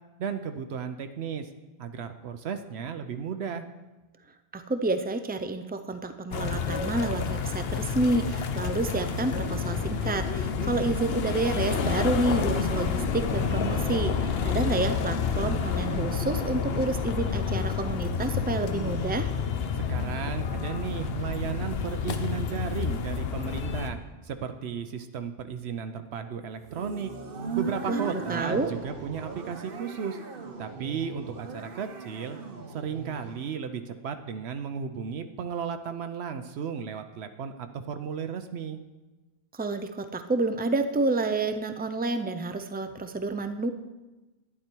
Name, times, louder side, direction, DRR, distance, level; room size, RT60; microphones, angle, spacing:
voice 1, 0.2-1.5 1.8-3.6 19.8-27.1 27.6-30.2 30.6-32.4 32.7-38.8, right 7 dB, 80° right, 8 dB, 0.9 m, -34 dB
voice 2, 4.5-19.3 27.9-28.7 39.5-43.7, right 2 dB, 15° right, 9 dB, 0.3 m, -29 dB
sound 1, 6.3-23.9, left 6 dB, 70° left, 1.0 m, -29 dB
sound 2, 26.6-33.4, right 5 dB, 60° right, 1.1 m, -37 dB
11.0 x 9.9 x 4.5 m, 1.1 s
omnidirectional pair, 1.1 m